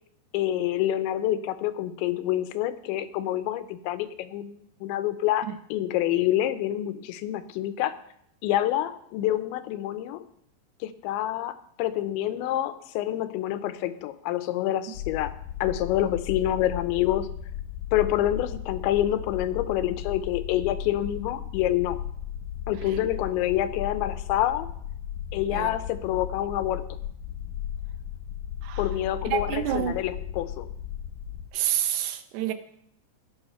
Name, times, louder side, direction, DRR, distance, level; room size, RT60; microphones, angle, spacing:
voice 1, 0.3-7.9 8.4-10.2 10.8-15.3 15.6-17.3 17.9-22.0 22.7-24.7 25.3-26.9 28.8-30.7, left 13 dB, 90° left, 3.1 m, -27 dB
sound 1, 14.9-31.5, left 10 dB, 60° left, 2.3 m, -36 dB
voice 2, 29.3-30.0 31.5-32.5, right 11 dB, 75° right, 2.8 m, -28 dB
15.0 x 10.5 x 5.6 m
omnidirectional pair, 5.1 m